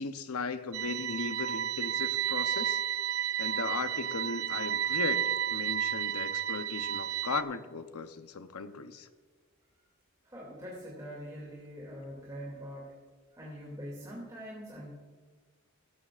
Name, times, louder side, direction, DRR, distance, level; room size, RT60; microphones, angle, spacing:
voice 1, 0.0-2.8 3.4-5.2 5.5-9.1, left 4 dB, 85° left, 10 dB, 0.8 m, -37 dB
sound 1, 0.7-7.4, right 10 dB, 70° right, 0.6 m, -32 dB
voice 2, 10.2-12.9 13.3-14.9, equal, 15° right, -4 dB, 2.5 m, -43 dB
17.5 x 14.5 x 2.5 m, 1.5 s
head